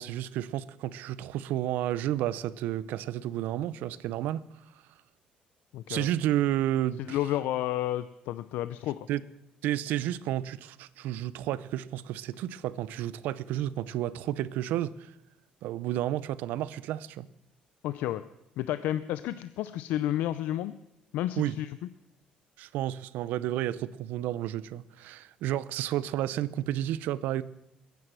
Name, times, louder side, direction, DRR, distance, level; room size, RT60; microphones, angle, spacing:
voice 1, 0.0-4.4 5.9-7.2 9.1-9.2 9.6-15.1 15.6-17.3 21.4-21.6 22.6-27.4, right 12 dB, 85° right, 0.6 m, -31 dB
voice 2, 5.7-6.1 7.0-9.1 17.8-18.2 18.6-20.7 21.1-21.7, left 13 dB, 90° left, 0.5 m, -31 dB
22.0 x 9.4 x 6.2 m
cardioid pair, 160°, 3 cm